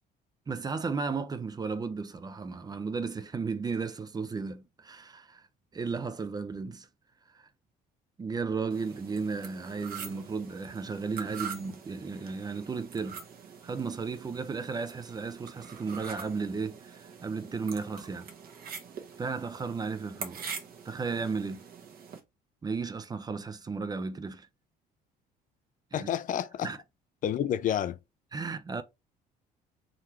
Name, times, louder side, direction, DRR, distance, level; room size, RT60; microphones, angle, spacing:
voice 1, 0.5-5.5 5.7-6.9 7.3-7.5 8.2-13.2 13.6-18.3 19.2-20.5 20.8-21.6 22.6-24.5 25.9-26.1 26.6-26.8 28.3-28.8, right 4 dB, 25° right, 0.5 m, -34 dB
sound 1, 8.7-22.2, right 7 dB, 60° right, 1.1 m, -44 dB
voice 2, 25.9-26.7 27.2-28.0, left 10 dB, 50° left, 0.5 m, -29 dB
3.8 x 3.2 x 2.9 m
cardioid pair, 110°, 17 cm